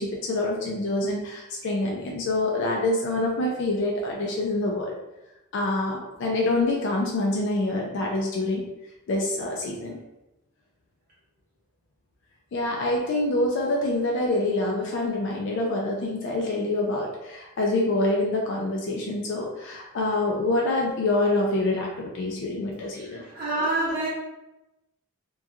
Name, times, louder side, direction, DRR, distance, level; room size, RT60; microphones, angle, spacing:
voice 1, 0.0-4.9 5.5-8.7 9.1-10.0 12.5-23.2, left 2 dB, 55° left, -1 dB, 0.3 m, -26 dB
voice 2, 22.9-24.1, right 2 dB, 40° right, -8 dB, 0.6 m, -27 dB
2.8 x 2.3 x 2.4 m, 0.96 s
head